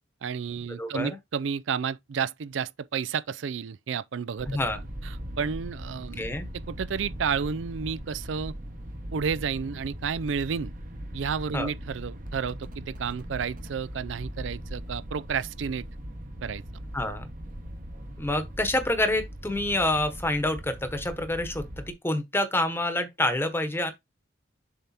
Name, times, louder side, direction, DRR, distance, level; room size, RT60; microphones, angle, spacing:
voice 1, 0.2-4.6 5.4-6.2 6.7-8.5 9.1-10.7 11.1-15.9 16.4-16.6, right 6 dB, 70° right, 0.4 m, -31 dB
voice 2, 0.8-1.2 4.5-4.8 6.2-6.5 11.5-11.7 16.9-17.3 18.2-23.9, left 1 dB, 15° left, 1.1 m, -27 dB
sound 1, 4.4-21.9, equal, 45° right, 1.2 m, -40 dB
7.2 x 3.4 x 4.3 m
head